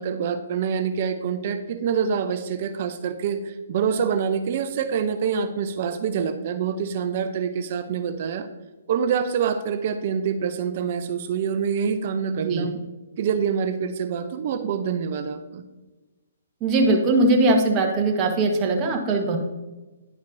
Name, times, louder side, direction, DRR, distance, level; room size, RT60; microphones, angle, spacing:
voice 1, 0.0-8.5 8.9-12.8 13.2-15.6, right 7 dB, 50° right, 9 dB, 0.6 m, -26 dB
voice 2, 12.3-12.6 16.6-19.4, right 2 dB, 25° right, 1 dB, 1.3 m, -20 dB
10.5 x 5.1 x 2.7 m, 1.1 s
hypercardioid pair, 140°, 0 cm